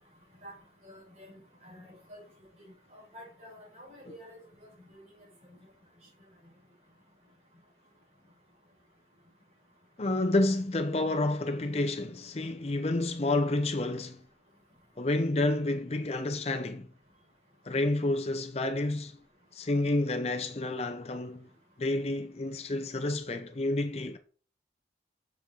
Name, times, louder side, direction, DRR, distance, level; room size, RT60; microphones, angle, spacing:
voice 1, 0.8-2.2 2.9-4.4 4.9-5.0, equal, 35° right, 4.4 m, -49 dB
voice 2, 10.0-14.2 15.0-16.9 17.6-19.2 19.5-21.5 21.8-24.2, left 2 dB, 35° left, 0.6 m, -29 dB
7.5 x 7.1 x 3.8 m
head